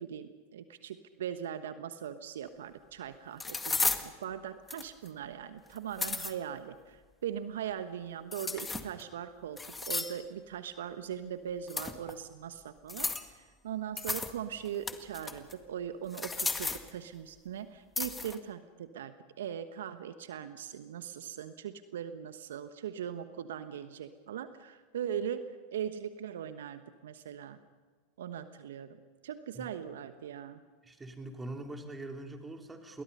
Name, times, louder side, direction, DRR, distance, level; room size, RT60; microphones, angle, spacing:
voice 1, 0.0-9.6 9.9-27.6 28.2-29.0 29.2-30.6, right 9 dB, 70° right, 11 dB, 1.1 m, -40 dB
sound 1, 2.5-2.6 3.4-4.1 4.7-5.1 5.8-6.3 8.3-9.0 9.6-10.2 11.7-12.1 12.9-13.3 14.0-14.3 14.7-15.5 16.1-16.9 18.0-18.4, left 3 dB, 15° left, 1.8 m, -34 dB
voice 2, 30.8-33.0, right 2 dB, 15° right, 4 dB, 3.2 m, -43 dB
29.0 x 21.5 x 5.6 m, 1.4 s
hypercardioid pair, 90°, 0 cm